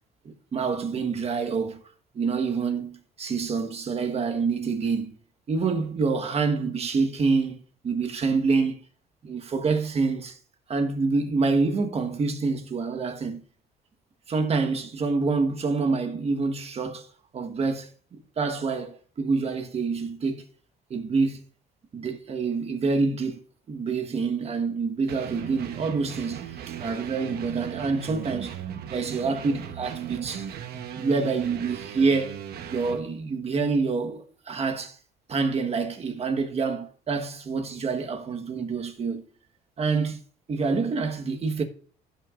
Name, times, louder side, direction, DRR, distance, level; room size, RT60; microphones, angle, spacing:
voice 1, 0.2-1.8 2.1-5.2 5.5-7.6 7.8-8.8 9.2-10.4 10.7-13.4 14.3-17.1 17.3-20.4 20.9-21.4 21.9-23.4 23.7-28.5 28.9-30.5 30.9-32.4 32.7-35.0 35.3-39.2 39.8-40.2 40.5-41.6, right 4 dB, 35° right, 1.3 m, -27 dB
sound 1, 25.1-33.0, right 9 dB, 70° right, 1.0 m, -37 dB
16.0 x 6.1 x 2.5 m
cardioid pair, 110°, 17 cm